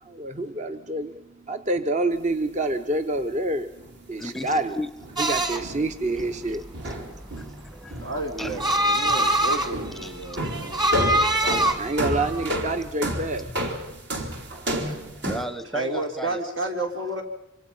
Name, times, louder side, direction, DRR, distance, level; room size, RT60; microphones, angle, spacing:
voice 1, 0.0-3.7 4.1-4.8 5.2-6.7 11.8-13.5, right 2 dB, 40° right, 8 dB, 0.8 m, -27 dB
sound 1, 3.2-3.3 3.8-4.0 4.5-4.7 5.0-5.2 5.6-7.7 7.9-9.4 9.7-10.1 10.3-15.4, equal, 60° right, 3.0 m, -31 dB
voice 2, 4.2-4.9 7.4-8.0 8.4-8.8 10.0-10.1 14.7-16.4, equal, ahead, 12 dB, 0.7 m, -35 dB
sound 2, 5.2-12.9, right 1 dB, 20° right, 1.6 m, -25 dB
voice 3, 8.0-10.9 11.4-11.7 14.8-14.9 15.7-17.2, right 1 dB, 85° right, 3 dB, 3.9 m, -31 dB
26.0 x 25.0 x 5.5 m, 0.85 s
head